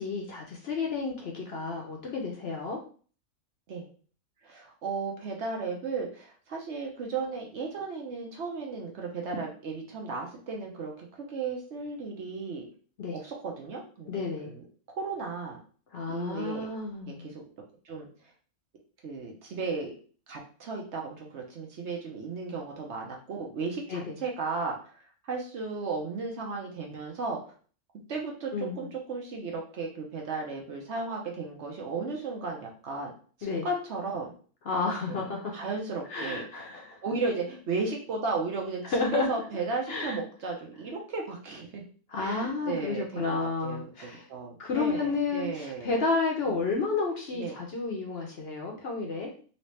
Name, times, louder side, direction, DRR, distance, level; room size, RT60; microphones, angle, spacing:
voice 1, 0.0-2.8 13.0-13.2 14.1-14.5 15.9-17.3 23.9-24.2 28.5-28.9 33.4-33.7 34.7-35.6 36.1-37.0 38.8-39.3 39.9-40.2 42.1-44.3 44.6-49.3, left 4 dB, 55° left, 0 dB, 0.8 m, -31 dB
voice 2, 4.4-12.6 13.1-15.6 16.1-16.7 17.1-17.3 17.8-18.1 19.0-19.9 20.3-24.8 25.2-27.4 28.1-33.1 33.6-34.3 35.1-36.5 37.0-41.8 42.2-46.0 47.3-47.6, right 4 dB, 60° right, 0 dB, 0.9 m, -35 dB
3.1 x 2.8 x 3.2 m, 0.42 s
omnidirectional pair, 1.5 m